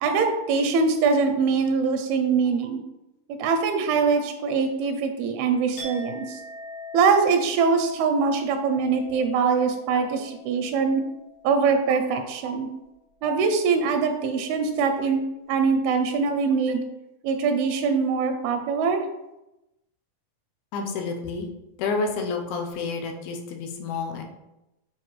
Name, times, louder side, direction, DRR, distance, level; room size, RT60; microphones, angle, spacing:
voice 1, 0.0-2.8 3.3-6.4 6.9-11.0 11.4-12.7 13.2-15.2 15.5-16.8 17.2-19.0, right 5 dB, 90° right, 5 dB, 2.6 m, -23 dB
Chink clink, 5.8-11.7 12.0-12.4, left 2 dB, 60° left, 2.3 m, -43 dB
voice 2, 20.7-21.5 21.8-24.2, left 4 dB, 85° left, 3 dB, 2.6 m, -29 dB
7.2 x 4.7 x 3.1 m, 0.93 s
omnidirectional pair, 4.3 m